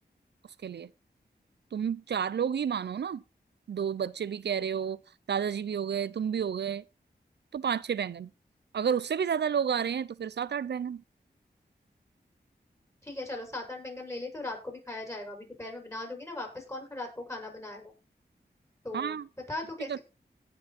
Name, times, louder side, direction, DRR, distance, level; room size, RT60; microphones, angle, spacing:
voice 1, 1.7-3.2 3.7-5.0 5.3-6.8 7.5-8.3 8.7-11.0 18.9-19.3 19.9-20.0, right 7 dB, 85° right, 0.6 m, -30 dB
voice 2, 13.0-17.9 18.8-19.2 19.5-20.0, left 2 dB, 15° left, 6.4 m, -38 dB
17.5 x 6.2 x 4.2 m
wide cardioid pair, 70°, 17 cm